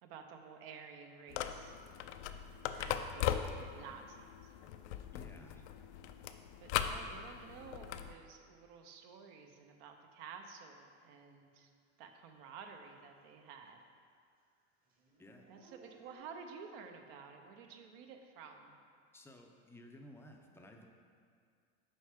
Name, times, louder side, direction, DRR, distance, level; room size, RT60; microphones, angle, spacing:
voice 1, 0.0-1.8 2.7-4.5 6.6-11.7 12.0-13.8 15.5-18.8, right 6 dB, 60° right, 5 dB, 0.8 m, -52 dB
sound 1, 1.3-8.1, left 9 dB, 75° left, 0.5 m, -39 dB
voice 2, 5.1-5.6 15.2-15.4 19.1-20.9, left 1 dB, 5° left, 2 dB, 0.5 m, -55 dB
Dog / Siren, 11.8-11.9 12.4-13.8 14.1-16.2, right 2 dB, 25° right, 1.0 m, -65 dB
6.3 x 4.5 x 4.9 m, 2.2 s
supercardioid pair, 120°, 34 cm